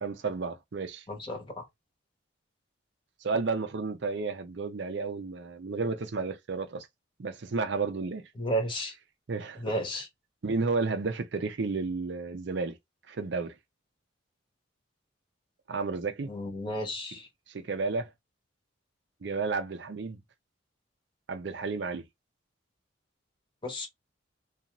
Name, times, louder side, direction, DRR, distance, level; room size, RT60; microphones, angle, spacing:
voice 1, 0.0-1.0 3.2-6.9 7.2-8.2 9.3-9.6 10.4-12.8 13.1-13.5 15.7-16.3 17.5-18.1 19.2-20.2 21.3-22.0, right 4 dB, 60° right, 0.5 m, -32 dB
voice 2, 1.1-1.6 8.4-8.9 9.6-10.1 16.3-17.3 23.6-23.9, right 1 dB, 25° left, 0.9 m, -33 dB
2.6 x 2.4 x 2.9 m
head